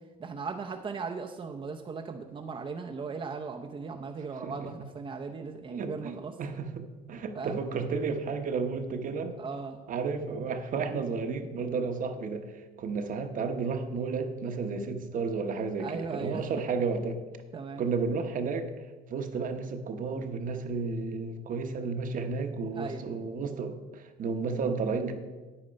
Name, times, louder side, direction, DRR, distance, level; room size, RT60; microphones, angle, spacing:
voice 1, 0.2-6.3 7.3-7.6 9.4-9.8 15.8-16.5 17.5-17.8 22.8-23.0, right 5 dB, 30° right, 3 dB, 0.7 m, -37 dB
voice 2, 4.4-4.8 5.7-9.3 9.9-12.5 12.8-17.2 17.8-18.7 19.1-25.1, right 4 dB, 50° right, 7 dB, 1.0 m, -32 dB
9.1 x 8.8 x 5.2 m, 1.3 s
cardioid pair, 110°, 17 cm